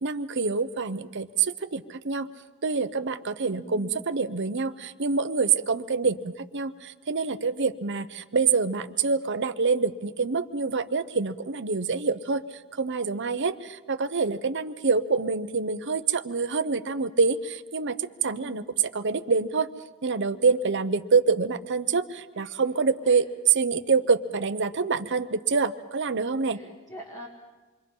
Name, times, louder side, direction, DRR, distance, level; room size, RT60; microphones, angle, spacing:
voice 1, 0.0-2.3 2.6-12.4 12.7-18.6 18.9-19.7 20.0-26.6, right 5 dB, 55° right, 10 dB, 0.9 m, -26 dB
voice 2, 3.5-4.0 18.2-18.7 22.3-22.5 23.0-23.2 26.5-27.3, right 1 dB, 15° left, 0 dB, 2.0 m, -44 dB
28.0 x 23.0 x 5.6 m, 1.3 s
head